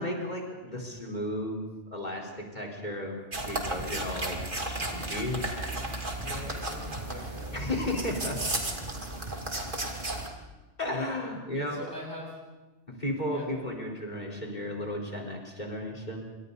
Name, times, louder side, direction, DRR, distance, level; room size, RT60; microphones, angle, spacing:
voice 1, 0.0-4.4 4.6-5.5 5.8-5.9 7.5-8.4 10.8-11.8 13.0-16.2, left 1 dB, 40° left, 0 dB, 4.5 m, -34 dB
sound 1, 3.3-10.3, right 2 dB, 45° right, 2.7 m, -34 dB
voice 2, 6.2-7.5 11.5-12.4 13.3-13.5, left 1 dB, 15° right, -4 dB, 7.9 m, -42 dB
27.5 x 25.0 x 4.1 m, 1.2 s
omnidirectional pair, 1.2 m